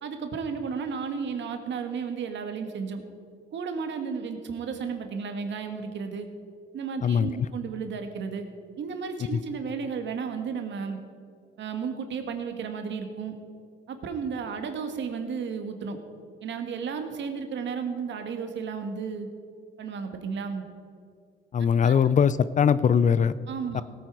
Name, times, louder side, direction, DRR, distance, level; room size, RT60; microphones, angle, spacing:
voice 1, 0.0-3.0 3.5-6.3 6.7-8.5 8.8-11.0 11.6-13.4 13.9-16.0 16.4-19.3 19.8-20.6 21.8-22.0 23.5-23.8, right 5 dB, 70° right, 6 dB, 1.5 m, -33 dB
voice 2, 21.5-23.3 23.7-23.8, left 7 dB, 40° left, 16 dB, 0.5 m, -21 dB
17.0 x 9.0 x 4.8 m, 2.2 s
cardioid pair, 90°, 20 cm